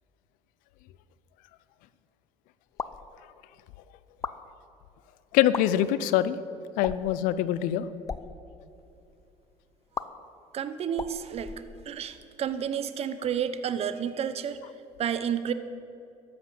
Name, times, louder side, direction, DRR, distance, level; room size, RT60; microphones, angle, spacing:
sound 1, 2.7-3.1 4.1-4.4 5.4-5.6 6.8-7.2 7.9-8.3 9.9-10.1 10.9-12.1, left 5 dB, 25° left, 0.8 m, -36 dB
voice 1, 5.3-6.4 6.8-7.9, left 12 dB, 80° left, 15 dB, 0.7 m, -24 dB
voice 2, 10.5-11.5 11.8-14.6 15.0-15.5, right 8 dB, 50° right, 12 dB, 1.0 m, -30 dB
13.5 x 11.5 x 7.8 m, 2.8 s
supercardioid pair, 95°, 14 cm